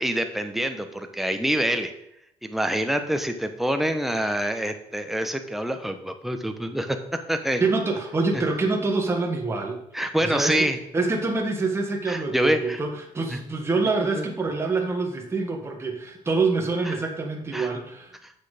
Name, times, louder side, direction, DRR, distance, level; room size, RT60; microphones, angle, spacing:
voice 1, 0.0-1.9 2.4-7.0 7.3-7.6 8.3-8.4 9.9-10.8 12.1-12.8 13.3-13.4 14.2-14.3 16.8-17.0 17.5-17.7 18.2-18.3, equal, ahead, 6 dB, 0.9 m, -26 dB
voice 2, 7.6-9.8 10.2-18.1, right 3 dB, 20° right, 1 dB, 1.6 m, -26 dB
8.3 x 6.4 x 5.0 m, 0.78 s
cardioid pair, 125°, 12 cm